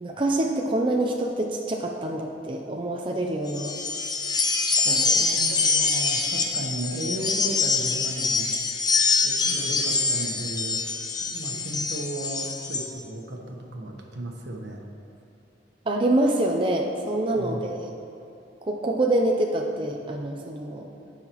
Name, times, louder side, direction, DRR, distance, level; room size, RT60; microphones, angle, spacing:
voice 1, 0.0-3.7 4.8-5.2 5.5-5.6 15.9-17.9 18.7-20.9, right 1 dB, 30° right, 1 dB, 0.5 m, -26 dB
sound 1, 3.5-12.9, left 4 dB, 25° left, 0.6 m, -25 dB
voice 2, 5.1-8.5 9.2-10.9 11.2-14.8 17.3-17.6, right 1 dB, 75° right, 1 dB, 1.1 m, -35 dB
17.0 x 5.7 x 3.0 m, 2.6 s
head